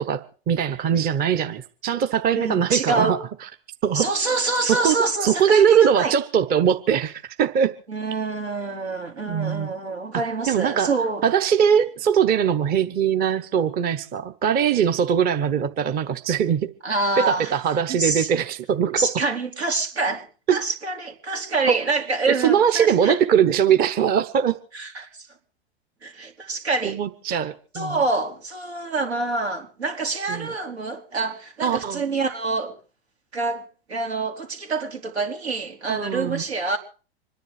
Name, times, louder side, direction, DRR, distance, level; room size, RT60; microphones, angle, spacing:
voice 1, 0.0-3.2 3.8-4.1 4.7-7.8 9.3-9.7 10.1-10.9 11.2-16.7 17.2-19.2 20.5-20.6 21.7-21.8 22.3-24.6 26.8-28.0 30.3-30.5 31.6-32.0 35.9-36.4, right 8 dB, 30° right, 1.0 m, -21 dB
voice 2, 2.4-3.1 3.9-6.1 7.9-11.2 16.8-17.5 17.9-18.3 19.0-23.2 24.7-25.3 26.0-27.0 27.7-32.8 33.3-33.6 33.9-36.8, right 3 dB, 85° right, 3.8 m, -26 dB
26.0 x 10.5 x 4.9 m
hypercardioid pair, 110°, 32 cm